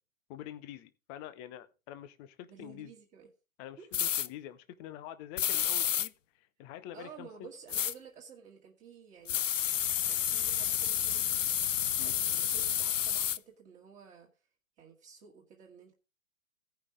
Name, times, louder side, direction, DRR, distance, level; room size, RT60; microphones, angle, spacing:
voice 1, 0.3-2.9 3.6-7.5 12.0-12.1, left 11 dB, 15° left, 0.6 m, -46 dB
voice 2, 2.5-3.3 3.8-3.9 6.9-9.4 10.1-11.4 12.0-14.3 14.8-15.9, right 6 dB, 20° right, 1.9 m, -52 dB
sound 1, 3.9-4.3 5.4-6.1 7.7-7.9 9.3-13.4, left 10 dB, 70° left, 0.6 m, -30 dB
16.0 x 5.6 x 4.9 m
figure-of-eight pair, 125°, 40 cm